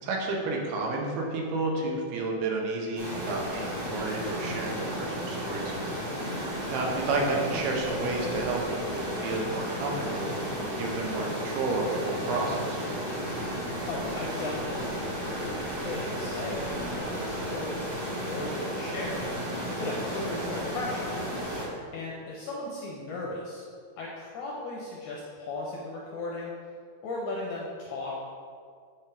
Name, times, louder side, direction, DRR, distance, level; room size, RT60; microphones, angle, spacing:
voice 1, 0.0-6.0 6.7-12.9, right 2 dB, 85° right, 0 dB, 3.0 m, -31 dB
sound 1, 3.0-21.7, equal, 35° right, 1.5 m, -33 dB
sound 2, 4.4-21.9, left 1 dB, 35° left, 1.5 m, -49 dB
voice 2, 6.2-6.5 13.9-19.3 19.8-21.2 21.9-23.6 24.0-26.5 27.0-28.2, left 2 dB, 75° left, -3 dB, 1.8 m, -37 dB
8.3 x 5.8 x 3.4 m, 2.2 s
omnidirectional pair, 4.4 m